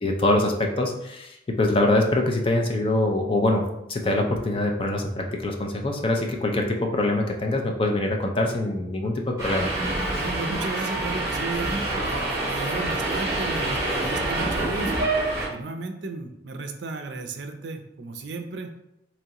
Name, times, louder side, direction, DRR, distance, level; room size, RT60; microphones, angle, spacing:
voice 1, 0.0-9.7, left 2 dB, 30° left, 2 dB, 0.4 m, -24 dB
Subway metro underground, 9.4-15.5, right 2 dB, 20° right, 1.2 m, -26 dB
voice 2, 10.1-14.9 15.5-18.7, right 3 dB, 70° right, 6 dB, 0.4 m, -34 dB
3.6 x 3.0 x 2.9 m, 0.86 s
head